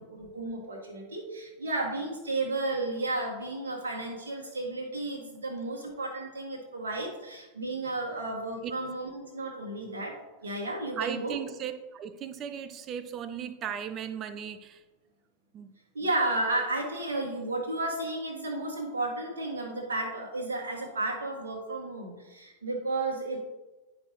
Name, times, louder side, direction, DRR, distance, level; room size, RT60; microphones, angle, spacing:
voice 1, 0.0-10.1 10.4-11.4 15.9-23.4, right 2 dB, 70° right, 0 dB, 1.7 m, -33 dB
voice 2, 11.0-14.8 15.5-15.7, right 8 dB, 30° right, 11 dB, 0.6 m, -37 dB
10.5 x 5.3 x 3.0 m, 1.1 s
figure-of-eight pair, 90°, 0 cm